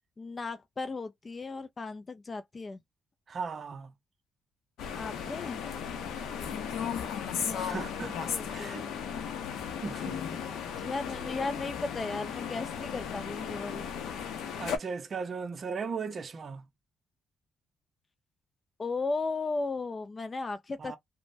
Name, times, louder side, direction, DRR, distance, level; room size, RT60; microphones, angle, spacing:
voice 1, 0.2-2.8 5.0-5.6 7.4-7.8 8.2-9.0 10.8-13.9 18.8-21.0, left 3 dB, 30° left, 0.4 m, -36 dB
voice 2, 3.3-3.9 7.5-8.2 8.5-8.9 9.8-10.2 14.6-16.7 20.8-21.0, right 5 dB, 40° right, 0.5 m, -37 dB
sound 1, 4.8-14.8, left 7 dB, 85° left, 0.6 m, -36 dB
3.1 x 2.1 x 2.6 m
cardioid pair, 115°, 0 cm